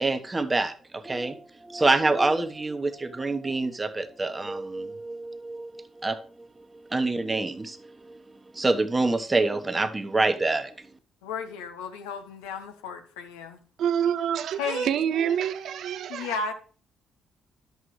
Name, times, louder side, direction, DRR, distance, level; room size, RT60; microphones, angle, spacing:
voice 1, 0.0-0.7 1.1-1.3 1.7-2.9 3.2-4.9 6.0-6.1 6.9-7.5 8.6-10.6, right 2 dB, 25° right, 1.1 m, -25 dB
voice 2, 11.2-13.6 14.6-14.9 16.1-16.5, left 5 dB, 85° left, 1.0 m, -34 dB
voice 3, 13.8-16.3, right 9 dB, 65° right, 0.5 m, -27 dB
10.5 x 8.0 x 3.2 m
hypercardioid pair, 45°, 0 cm